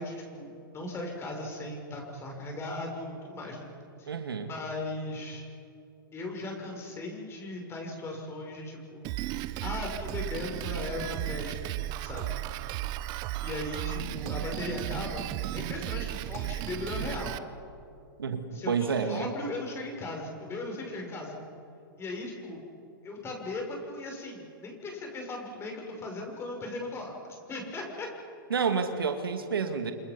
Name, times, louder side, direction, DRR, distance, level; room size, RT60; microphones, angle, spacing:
voice 1, 0.0-3.7 4.0-4.1 4.5-5.4 6.1-9.1 9.6-12.4 13.4-15.3 15.5-17.5 18.5-21.4 22.0-22.6 23.0-28.1, left 2 dB, 20° left, 1 dB, 6.4 m, -37 dB
voice 2, 4.1-4.5 18.2-19.3 28.5-29.9, right 5 dB, 80° right, 7 dB, 2.1 m, -29 dB
Drum kit, 9.0-17.4, right 15 dB, 35° right, 0.9 m, -35 dB
29.5 x 28.0 x 5.5 m, 2.6 s
hypercardioid pair, 115°, 12 cm